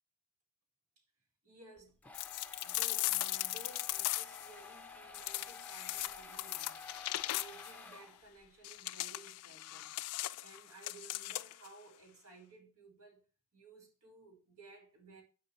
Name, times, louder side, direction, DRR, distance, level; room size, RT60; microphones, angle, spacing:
voice 1, 1.4-2.0 2.6-6.9 7.3-10.0 10.4-13.2 13.5-15.2, right 3 dB, 75° right, 1.9 m, -57 dB
sound 1, 1.8-8.5, left 3 dB, 5° left, 0.5 m, -52 dB
sound 2, 2.1-4.5 5.1-7.8 8.6-11.7, left 18 dB, 90° left, 0.3 m, -38 dB
10.0 x 5.0 x 3.1 m
head